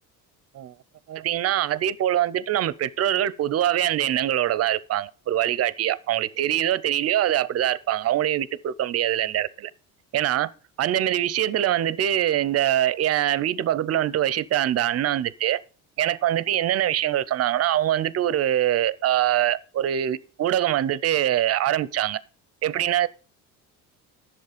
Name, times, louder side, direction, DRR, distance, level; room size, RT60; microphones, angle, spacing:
voice 1, 1.1-9.7 10.1-10.5 10.8-15.6 16.0-22.2 22.6-23.1, right 12 dB, 45° right, 0.5 m, -23 dB
10.5 x 7.3 x 5.0 m
cardioid pair, 125°, 36 cm